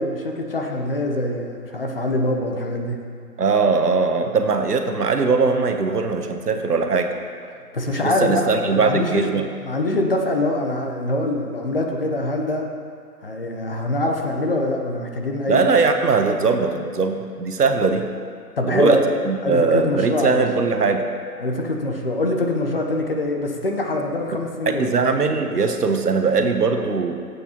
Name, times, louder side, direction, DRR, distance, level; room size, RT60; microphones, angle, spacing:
voice 1, 0.0-3.0 7.7-12.7 13.2-15.7 18.6-19.0 19.4-20.4 21.4-25.0, left 2 dB, 35° left, 2 dB, 0.9 m, -24 dB
voice 2, 3.4-7.1 7.9-9.4 15.5-18.1 18.7-19.0 19.2-21.0 24.8-27.1, right 4 dB, 75° right, 6 dB, 1.1 m, -20 dB
14.5 x 8.3 x 2.9 m, 2.1 s
figure-of-eight pair, 160°, 47 cm